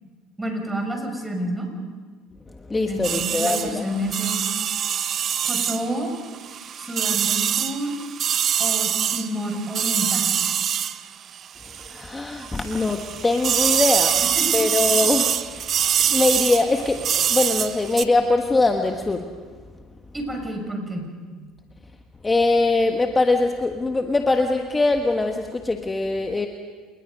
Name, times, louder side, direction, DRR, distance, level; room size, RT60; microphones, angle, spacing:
voice 1, 0.4-1.7 2.9-4.4 5.4-6.1 6.8-7.9 8.6-10.3 14.2-14.6 20.1-21.1, right 1 dB, 10° right, 3 dB, 6.4 m, -29 dB
voice 2, 2.6-3.9 11.8-15.7 16.1-19.4 22.2-26.5, left 3 dB, 20° left, 5 dB, 1.4 m, -22 dB
sound 1, 3.0-12.1 12.4-18.1, right 9 dB, 45° right, 0.8 m, -24 dB
28.0 x 20.0 x 5.3 m, 1.5 s
supercardioid pair, 80°, 0 cm